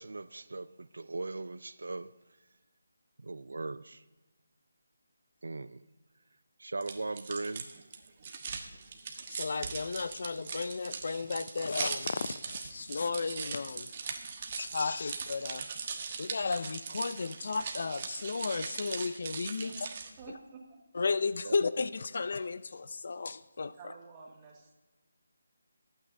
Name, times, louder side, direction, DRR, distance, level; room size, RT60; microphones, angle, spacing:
voice 1, 0.0-2.1 3.2-4.0 5.4-5.8 6.6-7.7 9.6-9.7 21.4-21.6, right 3 dB, 75° right, 15 dB, 0.4 m, -39 dB
sound 1, 6.8-20.2, right 5 dB, 35° right, 1.2 m, -40 dB
voice 2, 9.3-13.9 14.6-15.7 16.2-19.7 20.9-23.7, left 4 dB, 55° left, 14 dB, 0.5 m, -34 dB
voice 3, 20.2-20.8 23.7-24.7, right 4 dB, 20° right, -2 dB, 2.1 m, -50 dB
24.0 x 9.0 x 2.7 m, 1.2 s
figure-of-eight pair, 165°, 0 cm